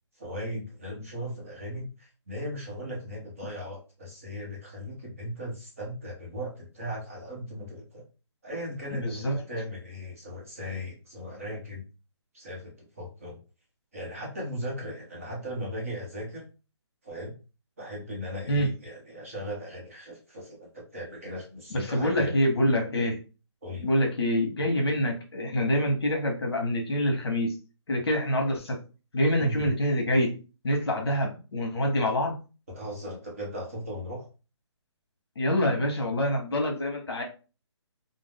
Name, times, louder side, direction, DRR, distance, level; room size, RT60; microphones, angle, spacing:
voice 1, 0.2-8.0 8.4-11.8 12.3-13.4 13.9-16.4 17.0-17.3 17.8-22.3 23.6-23.9 29.4-29.7 32.7-34.3, equal, 30° right, -2 dB, 0.8 m, -37 dB
voice 2, 8.9-9.4 18.5-18.7 21.7-23.2 23.8-27.5 27.9-28.8 29.1-30.3 30.6-32.4 35.4-37.2, equal, 55° left, 2 dB, 1.0 m, -26 dB
2.6 x 2.1 x 3.4 m, 0.33 s
hypercardioid pair, 175°, 15 cm